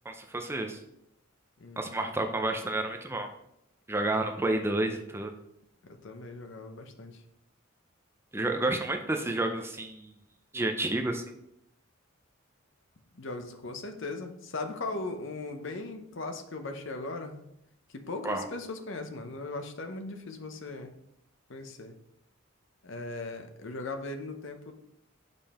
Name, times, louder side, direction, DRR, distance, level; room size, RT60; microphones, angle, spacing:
voice 1, 0.1-0.8 1.8-3.3 3.9-5.3 8.3-10.1 10.5-11.2 18.2-18.4, right 2 dB, 10° right, 4 dB, 0.5 m, -30 dB
voice 2, 5.8-7.2 13.1-17.4 17.9-20.9 21.5-22.0 22.8-24.7, left 3 dB, 65° left, 6 dB, 0.8 m, -38 dB
5.4 x 5.3 x 4.2 m, 0.77 s
head